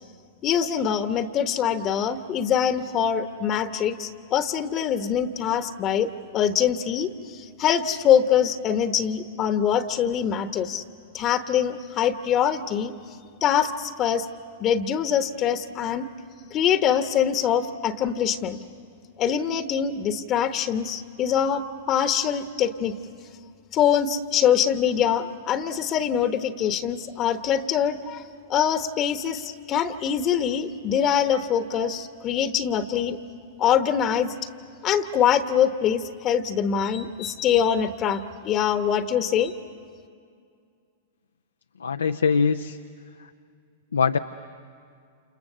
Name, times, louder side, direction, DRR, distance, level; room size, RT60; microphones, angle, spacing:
voice 1, 0.4-10.8 11.1-13.2 13.4-14.3 14.6-16.1 16.5-18.6 19.2-22.9 23.7-28.2 28.5-33.2 33.6-34.3 34.8-39.5, left 8 dB, 35° left, 10 dB, 1.1 m, -24 dB
voice 2, 41.8-42.8 43.9-44.2, left 5 dB, 80° left, 8 dB, 0.6 m, -22 dB
29.5 x 28.5 x 6.8 m, 2.3 s
figure-of-eight pair, 100°, 0 cm